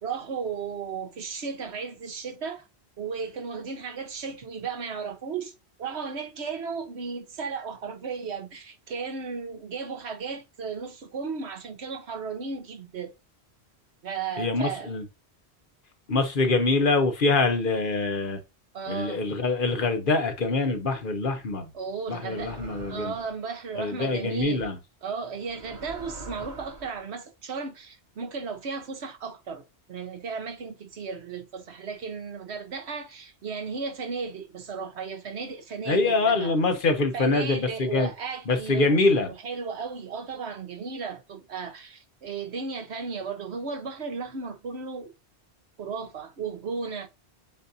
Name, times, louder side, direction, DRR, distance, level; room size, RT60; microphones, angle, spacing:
voice 1, 0.0-2.7 3.0-5.5 5.8-13.1 14.0-14.9 18.7-19.3 21.7-22.6 22.9-24.7 25.0-36.5 37.1-45.1 45.8-47.1, right 5 dB, 80° right, 1.2 m, -35 dB
voice 2, 14.4-15.0 16.1-18.4 18.9-21.6 22.1-23.1 23.8-24.8 35.9-38.1 38.5-39.3, left 3 dB, 55° left, 1.0 m, -24 dB
sound 1, 22.3-23.4 24.4-24.6 25.4-27.0, right 3 dB, 45° right, 1.2 m, -43 dB
7.3 x 2.6 x 2.7 m
omnidirectional pair, 1.1 m